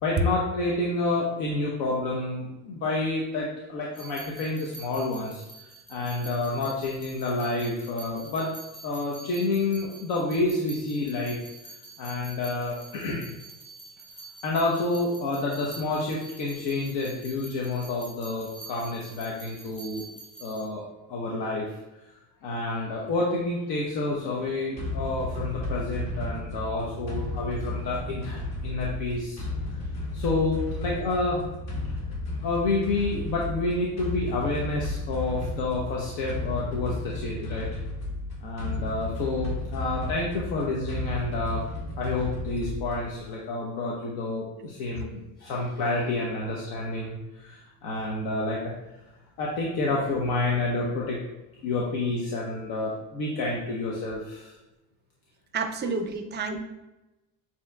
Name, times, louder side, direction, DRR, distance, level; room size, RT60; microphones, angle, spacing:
voice 1, 0.0-5.4 5.9-8.5 8.8-11.4 12.0-13.3 14.4-20.0 20.4-20.8 21.1-21.7 22.4-29.4 30.1-31.4 32.4-37.7 38.4-41.6 42.0-48.7 49.4-51.2 51.6-54.5 55.8-56.0, left 2 dB, 70° left, -3 dB, 0.9 m, -29 dB
sound 1, 3.9-20.7, right 3 dB, 15° left, 1.1 m, -46 dB
sound 2, 24.8-43.2, left 2 dB, 40° left, 1.1 m, -33 dB
voice 2, 55.5-56.6, right 5 dB, 25° right, 6 dB, 0.4 m, -30 dB
7.2 x 2.8 x 2.3 m, 0.99 s
cardioid pair, 130°, 40 cm